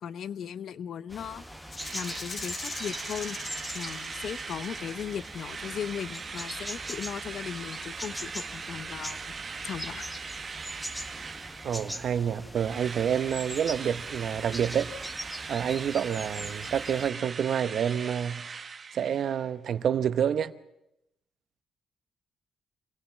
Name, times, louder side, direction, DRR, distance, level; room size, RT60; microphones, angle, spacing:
voice 1, 0.0-1.4 1.9-3.4 3.7-9.3 9.6-10.1, left 8 dB, 65° left, 0.9 m, -37 dB
sound 1, 1.1-17.1, equal, 5° left, 1.7 m, -42 dB
Rattle (instrument), 1.7-5.6, left 3 dB, 35° left, 1.6 m, -42 dB
Drill, 1.8-12.2 12.6-19.5, right 5 dB, 40° right, 1.0 m, -40 dB
voice 2, 11.6-14.9 15.5-18.5 18.9-20.5, right 8 dB, 60° right, 1.0 m, -28 dB
26.0 x 17.0 x 7.6 m
cardioid pair, 90°, 0 cm